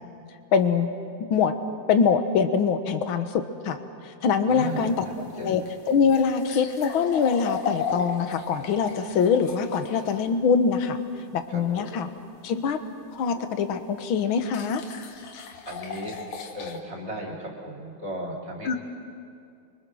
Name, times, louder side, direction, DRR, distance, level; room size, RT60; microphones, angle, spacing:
voice 1, 0.5-0.9 1.3-1.5 1.9-3.3 3.6-3.8 4.0-5.0 5.3-5.6 5.9-11.0 11.3-12.1 12.4-12.8 13.1-14.8 18.6-18.8, left 6 dB, 55° left, 8 dB, 1.6 m, -23 dB
voice 2, 4.5-5.6 11.5-11.6 15.7-16.2 16.5-18.8, right 1 dB, 20° right, -2 dB, 3.6 m, -36 dB
sound 1, 4.6-10.2 13.3-13.4 14.5-16.8, left 6 dB, 70° left, 2.7 m, -36 dB
29.5 x 24.0 x 6.3 m, 2.4 s
omnidirectional pair, 3.4 m